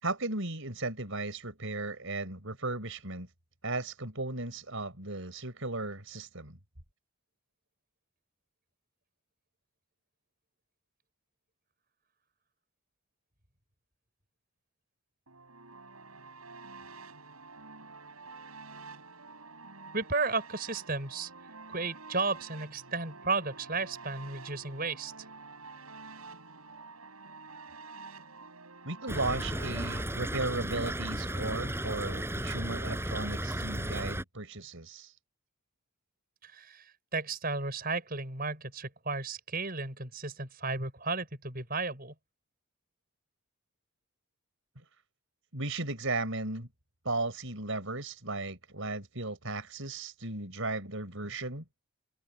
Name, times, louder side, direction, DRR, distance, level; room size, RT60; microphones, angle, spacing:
voice 1, 0.0-3.3 3.6-6.6 28.8-35.1 45.5-46.7 47.0-51.6, right 2 dB, 65° right, 5.2 m, -35 dB
sound 1, 15.3-30.0, right 4 dB, 85° right, 6.8 m, -49 dB
voice 2, 19.9-21.3 21.7-25.1 36.4-42.1, right 3 dB, 40° right, 7.2 m, -34 dB
Stream / Trickle dribble, 29.1-34.2, right 1 dB, 10° right, 5.9 m, -34 dB
head